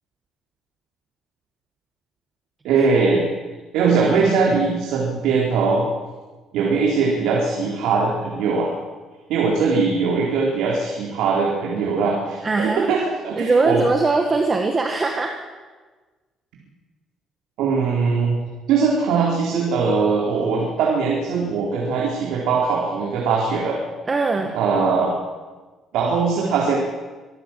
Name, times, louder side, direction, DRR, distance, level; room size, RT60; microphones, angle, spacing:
voice 1, 2.6-3.3 3.7-5.8 6.5-8.7 9.3-13.8 17.6-18.4 18.7-23.8 24.5-25.1 25.9-26.8, right 4 dB, 80° right, -2 dB, 4.2 m, -20 dB
voice 2, 12.4-12.9 13.4-15.4 24.1-24.5, right 3 dB, 20° right, 3 dB, 1.6 m, -21 dB
25.0 x 15.0 x 7.6 m, 1.3 s
cardioid pair, 165°, 0 cm